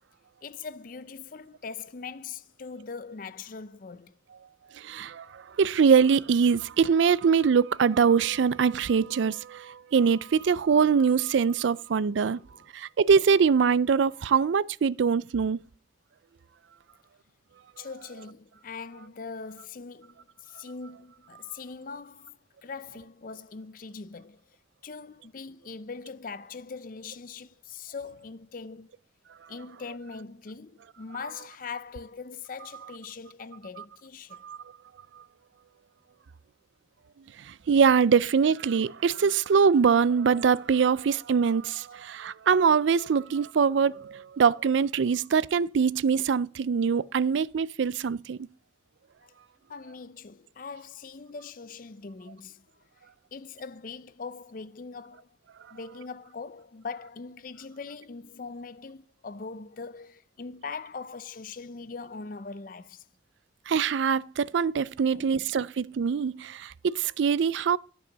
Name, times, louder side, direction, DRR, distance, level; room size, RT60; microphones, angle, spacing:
voice 1, 0.4-4.1 12.2-12.7 17.8-24.6 24.8-28.9 29.5-34.4 49.2-49.3 49.7-52.7 53.3-55.4 55.7-63.1 65.1-65.5, left 4 dB, 45° left, 0.5 m, -41 dB
voice 2, 4.7-12.4 12.7-15.6 34.4-34.6 37.4-48.5 63.7-67.8, right 6 dB, 75° right, 0.4 m, -23 dB
12.0 x 5.5 x 6.8 m
head